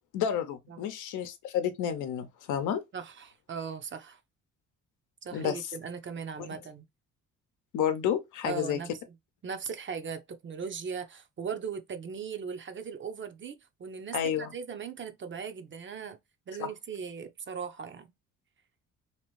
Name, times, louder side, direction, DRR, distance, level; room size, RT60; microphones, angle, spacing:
voice 1, 0.1-2.8 5.3-5.6 6.4-6.6 7.7-8.8 14.1-14.5 16.6-16.7, left 9 dB, 90° left, 0.7 m, -30 dB
voice 2, 2.9-4.2 5.2-6.9 8.4-8.9 9.4-16.2 16.5-18.1, right 6 dB, 40° right, 0.6 m, -38 dB
2.9 x 2.5 x 3.1 m
cardioid pair, 90°, 30 cm